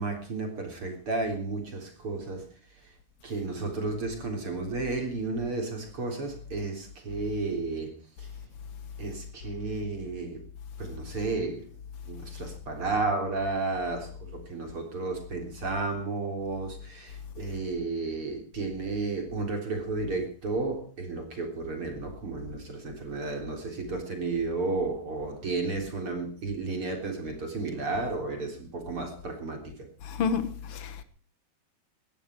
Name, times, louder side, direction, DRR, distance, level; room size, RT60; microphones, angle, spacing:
voice 1, 0.0-2.5 2.8-2.9 3.2-8.3 9.0-10.4 10.8-11.7 12.0-29.9, right 3 dB, 35° right, 4.0 m, -32 dB
voice 2, 30.0-31.0, left 6 dB, 70° left, 1.3 m, -30 dB
19.0 x 14.0 x 4.6 m
omnidirectional pair, 4.7 m